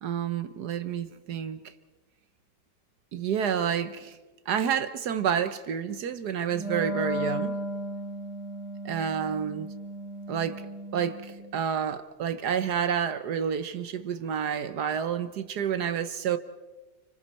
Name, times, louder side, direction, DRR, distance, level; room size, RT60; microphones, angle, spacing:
voice 1, 0.0-1.6 3.1-4.2 4.5-7.6 8.8-9.7 10.3-10.6 10.9-16.4, right 8 dB, 70° right, 1.4 m, -29 dB
Wind instrument woodwind instrument, 6.5-11.6, equal, 40° left, 2.9 m, -35 dB
29.5 x 25.5 x 4.3 m
omnidirectional pair, 1.9 m